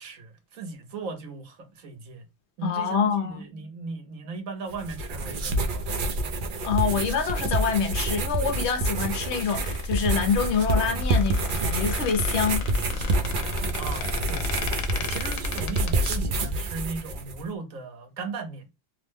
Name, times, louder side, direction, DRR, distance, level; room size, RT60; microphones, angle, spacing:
voice 1, 0.0-2.2 2.6-6.3 13.8-14.5 14.9-18.7, right 4 dB, 85° right, 1.3 m, -37 dB
voice 2, 2.6-3.4 6.6-12.7, left 6 dB, 60° left, 0.9 m, -26 dB
sound 1, 4.7-17.4, right 1 dB, 55° right, 0.6 m, -27 dB
Squeak, 8.9-16.1, left 6 dB, 85° left, 1.0 m, -36 dB
2.9 x 2.1 x 3.3 m
omnidirectional pair, 1.4 m